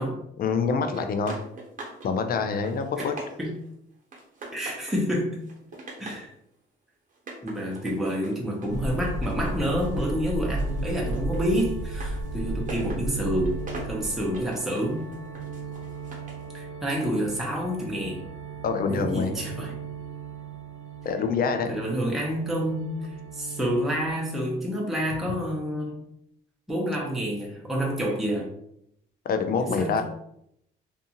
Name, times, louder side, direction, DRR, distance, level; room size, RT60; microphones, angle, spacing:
voice 1, 0.4-1.4 2.0-3.1 18.6-19.4 21.0-21.8 29.3-30.0, left 5 dB, 50° left, 7 dB, 0.4 m, -26 dB
sound 1, 0.9-2.1 2.4-3.7 4.1-5.0 5.4-6.3 7.1-10.1 10.4-16.5, right 2 dB, 40° right, 0.9 m, -43 dB
voice 2, 4.5-5.4 6.0-6.3 7.4-15.1 16.5-18.2 18.9-19.8 21.7-26.0 26.7-28.5 29.6-30.0, equal, ahead, -3 dB, 0.7 m, -28 dB
sound 2, 8.7-24.1, right 2 dB, 85° right, 0.6 m, -35 dB
2.6 x 2.3 x 2.8 m, 0.74 s
cardioid pair, 90°, 20 cm